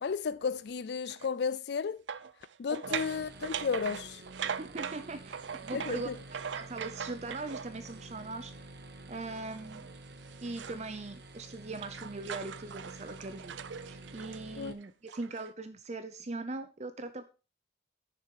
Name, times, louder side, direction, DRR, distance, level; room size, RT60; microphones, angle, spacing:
voice 1, 0.0-2.0 2.6-4.2 5.7-6.1 14.6-14.7, left 5 dB, 65° left, 0.4 m, -33 dB
sound 1, 1.1-1.3 2.1-8.0 9.3-10.9 11.2-15.5, right 7 dB, 85° right, 0.5 m, -41 dB
sound 2, 2.8-14.7, right 2 dB, 60° right, 1.0 m, -49 dB
voice 2, 4.4-6.1 6.5-8.5 9.1-9.9 10.4-13.6 13.8-17.2, right 3 dB, 40° right, 0.7 m, -40 dB
9.4 x 6.8 x 4.8 m
head